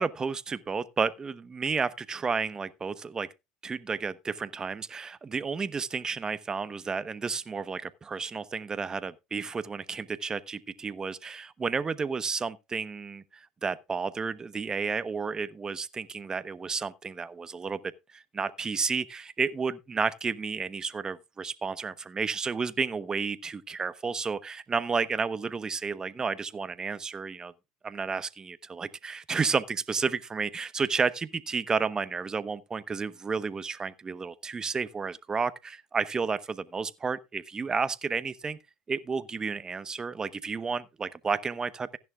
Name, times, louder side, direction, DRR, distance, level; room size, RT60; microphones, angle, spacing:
voice 1, 0.0-3.3 3.6-17.8 18.1-27.5 27.8-38.6 38.9-42.0, right 5 dB, 25° right, 1.0 m, -31 dB
15.5 x 10.5 x 2.4 m
hypercardioid pair, 85°, 3 cm